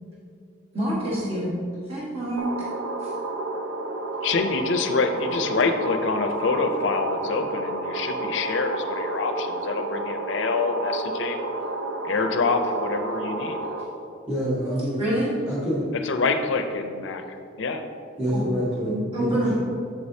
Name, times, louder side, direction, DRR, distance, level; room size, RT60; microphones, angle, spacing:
voice 1, 0.7-1.5 1.9-2.5 3.0-3.1 15.0-15.3 18.3-18.4 18.9-19.5, right 1 dB, 30° right, -8 dB, 1.5 m, -26 dB
sound 1, 2.4-13.8, right 2 dB, 75° right, 0.5 m, -30 dB
voice 2, 4.2-11.5 12.0-13.6 16.0-17.8, left 4 dB, 70° left, 7 dB, 0.4 m, -26 dB
voice 3, 14.3-15.0 15.5-15.9 18.2-19.5, equal, 10° right, -9 dB, 1.1 m, -26 dB
7.7 x 6.4 x 2.7 m, 2.6 s
head